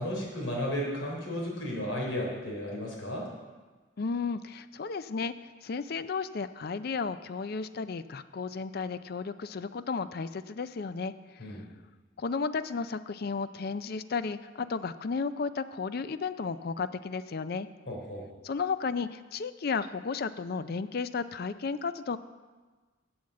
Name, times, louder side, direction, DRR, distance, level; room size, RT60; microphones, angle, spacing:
voice 1, 0.0-3.3 11.4-11.7 17.9-18.2, equal, 75° left, -2 dB, 3.6 m, -34 dB
voice 2, 4.0-11.6 12.2-17.7 18.4-22.2, left 5 dB, 50° left, 13 dB, 0.4 m, -33 dB
8.7 x 7.4 x 7.6 m, 1.3 s
head